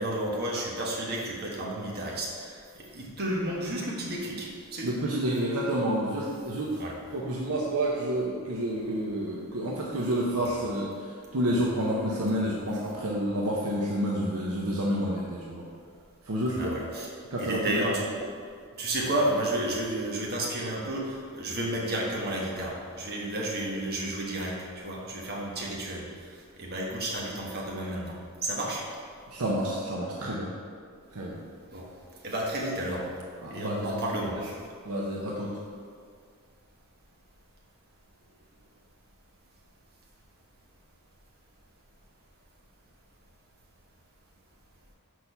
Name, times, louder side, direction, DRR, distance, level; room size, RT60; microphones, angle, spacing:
voice 1, 0.0-4.9 6.8-6.9 16.5-17.1 17.4-18.1 18.8-26.0 26.6-28.1 28.4-28.8 31.7-31.9 32.2-33.1 33.5-34.4, right 1 dB, 45° right, -3 dB, 1.3 m, -31 dB
voice 2, 4.8-15.7 16.3-16.7 17.3-17.8 29.3-30.5 31.1-31.4 33.4-34.0 34.8-35.6, right 1 dB, 70° right, -4 dB, 0.8 m, -29 dB
6.4 x 4.2 x 5.5 m, 2.1 s
head